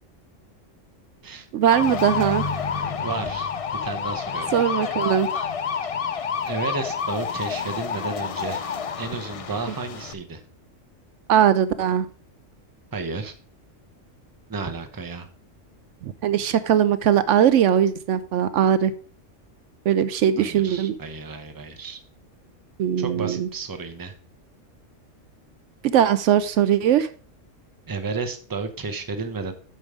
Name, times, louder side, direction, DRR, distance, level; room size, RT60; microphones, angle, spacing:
voice 1, 1.5-2.4 4.5-5.3 11.3-12.1 16.0-18.9 19.9-20.9 22.8-23.5 25.8-27.1, right 9 dB, 75° right, 13 dB, 0.9 m, -20 dB
sound 1, 1.6-10.1, left 6 dB, 65° left, 0.3 m, -29 dB
voice 2, 3.0-3.5 3.8-4.6 6.4-8.6 9.0-10.4 12.9-13.3 14.5-15.3 20.4-22.0 23.0-24.1 27.9-29.5, right 4 dB, 20° right, 6 dB, 0.8 m, -32 dB
8.8 x 5.6 x 4.8 m, 0.42 s
omnidirectional pair, 1.3 m